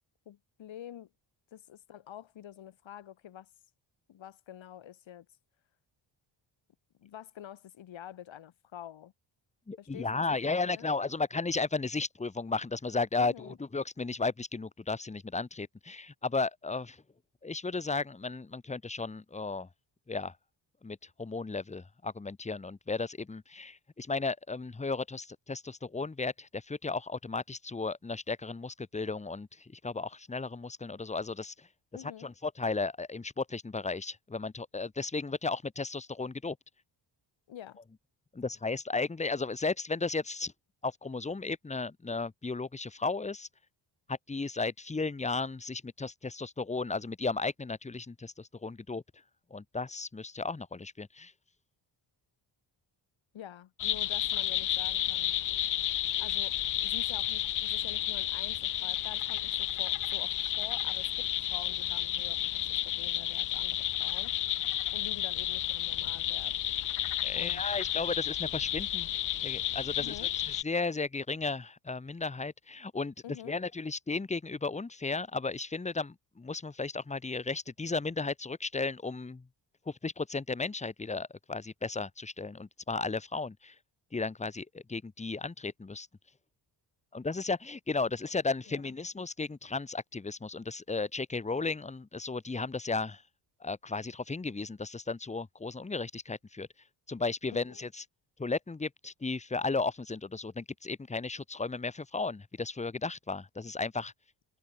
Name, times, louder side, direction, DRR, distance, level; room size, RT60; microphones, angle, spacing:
voice 1, 0.3-1.1 1.5-3.5 4.1-5.3 7.0-9.1 9.8-10.9 13.2-13.6 31.9-32.3 37.5-37.8 53.3-55.4 56.2-64.3 64.9-66.5 67.4-67.6 70.0-70.3 73.2-73.6 88.7-88.8 97.5-97.8, left 11 dB, 80° left, 6.1 m, -48 dB
voice 2, 9.7-17.0 17.4-19.7 20.1-20.3 20.8-31.7 32.2-36.6 38.3-40.5 40.8-43.5 44.1-49.0 49.5-51.3 67.2-69.1 69.4-70.1 70.6-73.1 73.5-79.5 79.9-83.7 84.1-86.1 87.1-93.2 93.6-96.7 97.1-98.1 98.4-104.1, left 3 dB, 15° left, 1.1 m, -34 dB
sound 1, 53.8-70.6, left 13 dB, 45° left, 0.4 m, -32 dB
open air
cardioid pair, 120°, 45 cm